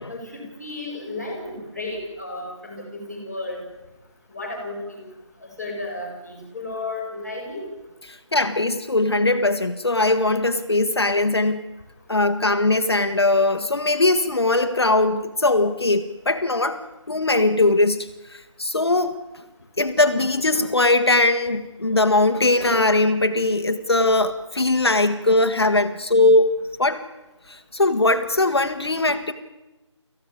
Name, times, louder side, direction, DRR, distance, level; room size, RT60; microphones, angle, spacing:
voice 1, 0.1-3.6 4.3-5.1 5.4-7.7, left 2 dB, 5° right, -9 dB, 4.1 m, -33 dB
voice 2, 8.1-11.6 12.1-19.1 19.8-27.0 27.5-29.3, left 2 dB, 55° left, 7 dB, 1.6 m, -20 dB
25.5 x 15.5 x 9.7 m, 1.0 s
figure-of-eight pair, 180°, 16 cm